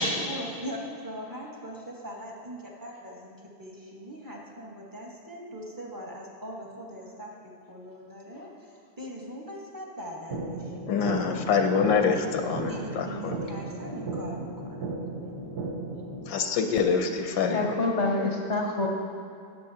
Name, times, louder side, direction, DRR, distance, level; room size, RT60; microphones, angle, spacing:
voice 1, 0.3-7.3 7.7-8.7 9.0-10.9 11.8-12.2 12.7-14.9, equal, 15° right, -2 dB, 1.1 m, -41 dB
sound 1, 10.3-16.3, right 2 dB, 60° right, 1.5 m, -35 dB
voice 2, 10.9-13.4 16.3-17.8, left 5 dB, 85° left, 5 dB, 1.4 m, -26 dB
voice 3, 17.5-18.9, left 2 dB, 50° left, 0 dB, 1.0 m, -26 dB
19.0 x 7.5 x 2.8 m, 2.6 s
omnidirectional pair, 2.0 m